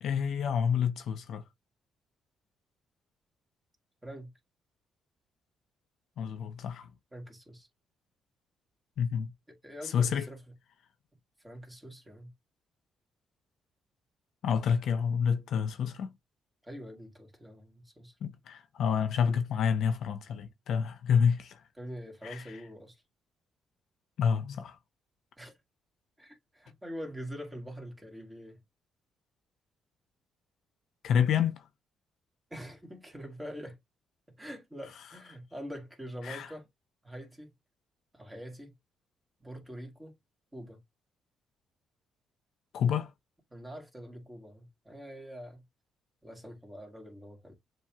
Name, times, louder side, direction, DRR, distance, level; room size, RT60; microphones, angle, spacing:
voice 1, 0.0-1.4 6.2-6.9 9.0-9.3 9.8-10.3 14.4-16.1 18.2-21.6 22.2-22.4 24.2-24.8 31.0-31.6 36.2-36.5 42.7-43.1, left 7 dB, 70° left, 0.6 m, -28 dB
voice 2, 4.0-4.3 7.1-7.7 9.5-10.4 11.4-12.3 16.6-18.1 21.8-23.0 25.4-25.5 26.2-28.6 32.5-33.8 34.4-36.7 37.0-37.5 38.1-38.8 39.4-40.1 40.5-40.8 43.5-45.6 46.2-47.5, equal, 10° right, 2.0 m, -44 dB
7.2 x 3.0 x 2.3 m
cardioid pair, 90°, 0 cm